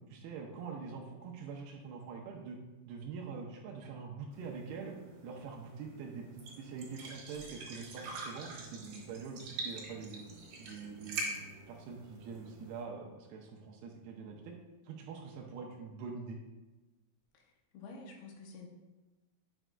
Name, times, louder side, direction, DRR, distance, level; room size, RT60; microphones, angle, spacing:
voice 1, 0.1-2.6 2.9-4.9 5.2-6.3 6.6-10.2 10.6-14.5 14.8-16.4, right 5 dB, 80° right, 0 dB, 2.5 m, -44 dB
sound 1, 4.3-12.8, right 3 dB, 60° right, 2.8 m, -45 dB
voice 2, 17.7-18.7, left 3 dB, 80° left, 1 dB, 2.8 m, -49 dB
8.9 x 6.0 x 2.3 m, 1.1 s
omnidirectional pair, 4.9 m